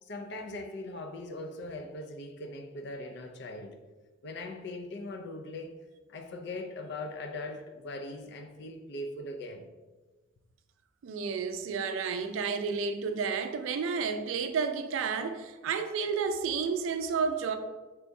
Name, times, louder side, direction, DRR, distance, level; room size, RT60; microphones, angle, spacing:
voice 1, 0.0-3.8 4.2-5.7 6.1-9.7, left 2 dB, 60° left, 0.5 m, -40 dB
voice 2, 11.0-17.6, right 5 dB, 85° right, 0.3 m, -31 dB
3.3 x 2.6 x 4.5 m
head